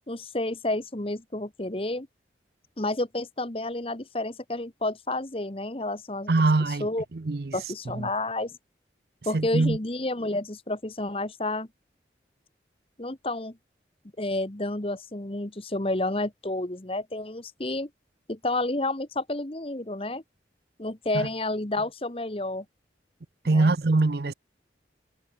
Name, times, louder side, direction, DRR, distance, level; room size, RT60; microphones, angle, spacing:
voice 1, 0.1-2.1 2.8-6.3 6.8-7.0 7.5-8.5 9.2-11.7 13.0-13.6 14.2-17.9 18.3-20.2 20.8-22.6 23.4-23.7, left 2 dB, 30° left, 1.4 m, -30 dB
voice 2, 6.3-7.6 7.9-8.1 9.3-9.8 21.1-21.3 23.4-24.3, right 3 dB, 60° right, 0.6 m, -23 dB
head